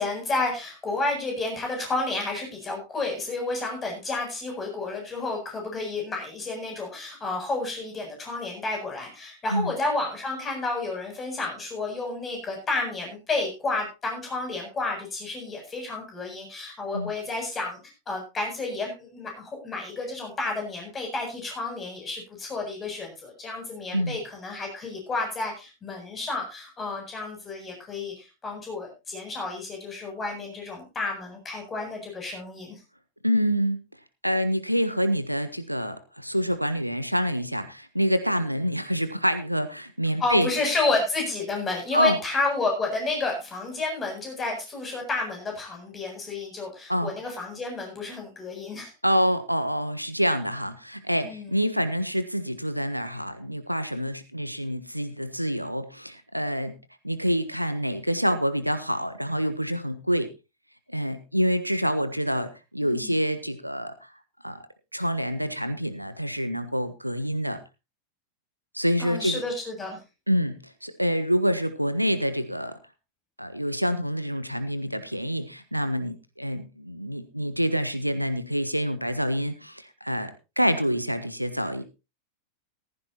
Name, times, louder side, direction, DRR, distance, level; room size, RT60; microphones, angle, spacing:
voice 1, 0.0-17.8 18.1-32.8 40.2-48.9 51.2-51.6 62.8-63.2 69.0-70.0, left 3 dB, 20° left, 2 dB, 8.0 m, -31 dB
voice 2, 33.2-33.8 34.2-40.5 41.9-42.2 46.9-47.1 49.0-56.7 57.0-60.3 60.9-64.1 64.4-64.6 64.9-67.6 68.7-69.4 70.3-72.8 73.4-81.8, equal, 90° right, 11 dB, 1.3 m, -27 dB
15.0 x 15.0 x 2.9 m, 0.28 s
figure-of-eight pair, 90°, 0 cm